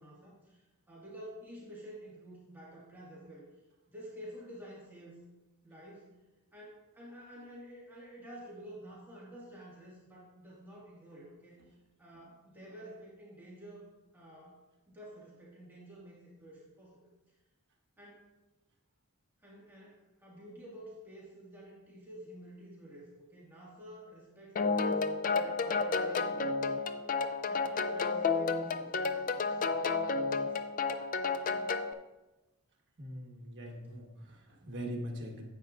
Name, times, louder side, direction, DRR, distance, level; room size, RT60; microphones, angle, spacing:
voice 1, 0.0-3.4 3.9-5.2 5.6-6.1 6.5-11.6 12.0-14.6 14.9-17.0 18.0-18.2 19.4-26.8 27.5-29.9 30.3-30.6, equal, 10° right, -7 dB, 1.8 m, -50 dB
sound 1, 24.6-31.9, left 4 dB, 35° left, 0.4 m, -31 dB
voice 2, 33.0-35.4, equal, 55° right, 1 dB, 1.4 m, -42 dB
9.9 x 7.7 x 2.5 m, 1.1 s
head